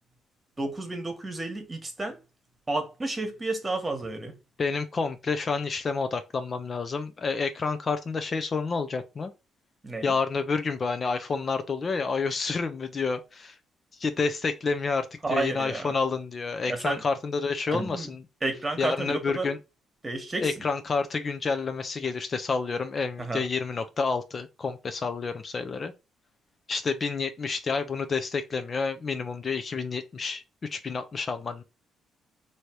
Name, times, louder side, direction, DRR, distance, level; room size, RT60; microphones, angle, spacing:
voice 1, 0.6-2.2 2.7-4.4 9.8-10.1 15.2-15.9 16.7-17.0 17.7-18.1 18.4-19.5 20.0-20.5 23.2-23.5, right 2 dB, 20° right, 1.3 m, -31 dB
voice 2, 4.6-9.3 10.0-13.6 14.0-18.2 18.8-19.6 20.4-25.9 26.7-31.6, left 4 dB, 40° left, 0.5 m, -29 dB
3.2 x 2.7 x 4.5 m
cardioid pair, 90°, 0 cm